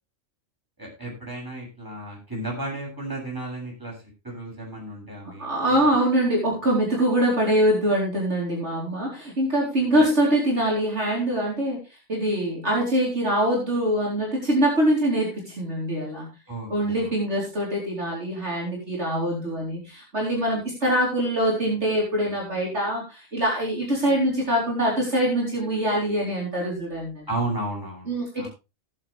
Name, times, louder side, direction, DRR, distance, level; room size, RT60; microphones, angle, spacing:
voice 1, 0.8-3.9 4.2-5.9 16.5-17.1 27.3-28.5, right 2 dB, 15° right, -3 dB, 7.5 m, -33 dB
voice 2, 5.4-11.8 12.1-16.3 16.7-27.3 28.1-28.5, right 1 dB, 55° right, -3 dB, 4.4 m, -24 dB
18.5 x 7.8 x 3.4 m, 0.29 s
omnidirectional pair, 1.3 m